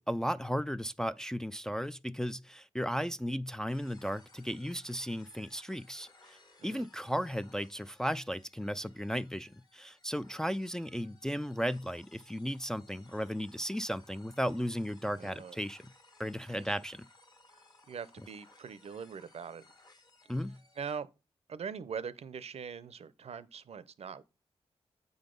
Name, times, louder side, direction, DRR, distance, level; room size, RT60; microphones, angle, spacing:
voice 1, 0.0-6.4 6.6-15.8 16.2-17.1 20.3-20.6, equal, 5° left, 0.3 m, -35 dB
sound 1, 3.7-21.0, left 2 dB, 40° left, 1.3 m, -62 dB
voice 2, 15.2-15.6 16.6-16.8 17.9-19.7 20.8-21.1 21.5-24.2, right 6 dB, 70° right, 0.6 m, -42 dB
8.2 x 3.9 x 5.1 m
cardioid pair, 70°, 11 cm